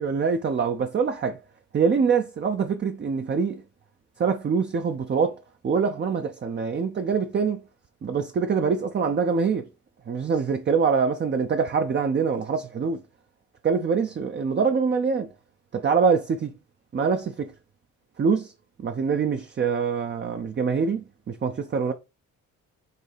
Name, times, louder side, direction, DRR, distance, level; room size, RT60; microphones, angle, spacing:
voice 1, 0.0-1.4 1.7-3.6 4.2-5.4 5.6-7.6 8.0-9.7 10.1-13.0 13.6-15.3 15.7-16.5 16.9-17.5 18.2-18.5 18.8-21.9, right 5 dB, 35° right, 0.7 m, -24 dB
6.7 x 2.8 x 4.9 m
cardioid pair, 100°, 32 cm